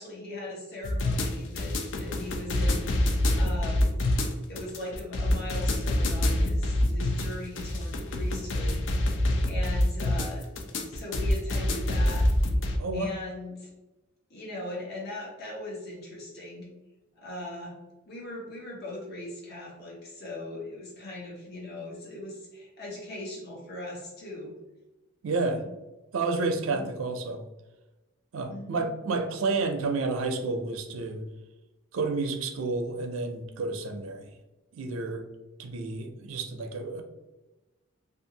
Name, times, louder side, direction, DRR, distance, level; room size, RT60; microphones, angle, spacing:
voice 1, 0.0-4.0 4.5-10.4 10.8-12.3 12.9-13.7 14.3-16.7 17.2-17.8 18.1-24.6 25.4-25.7 26.6-26.9 28.4-28.9, left 1 dB, 50° left, -4 dB, 0.9 m, -40 dB
sound 1, 0.8-12.8, left 1 dB, 65° left, 0.4 m, -26 dB
voice 2, 12.8-13.1 25.2-25.6 26.1-27.4 28.3-31.3 31.9-34.3 34.7-35.3 35.6-37.0, right 3 dB, 85° right, 5 dB, 0.4 m, -30 dB
2.6 x 2.3 x 2.7 m, 1.0 s
head